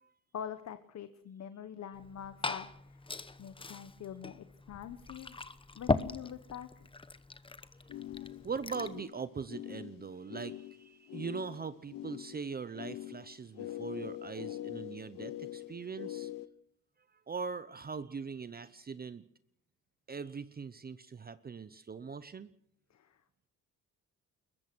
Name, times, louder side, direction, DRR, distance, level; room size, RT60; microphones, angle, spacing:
voice 1, 0.3-3.0 3.4-5.4 5.7-6.9 22.9-23.2, left 9 dB, 50° left, 11 dB, 1.2 m, -45 dB
Glass / Fill (with liquid), 1.9-9.0, left 3 dB, 15° left, 0.9 m, -39 dB
sound 1, 7.9-16.5, left 14 dB, 75° left, 1.1 m, -44 dB
voice 2, 8.4-16.3 17.3-19.2 20.1-22.5, right 5 dB, 25° right, 14 dB, 0.8 m, -41 dB
22.0 x 21.0 x 6.2 m, 0.67 s
cardioid pair, 135°, 34 cm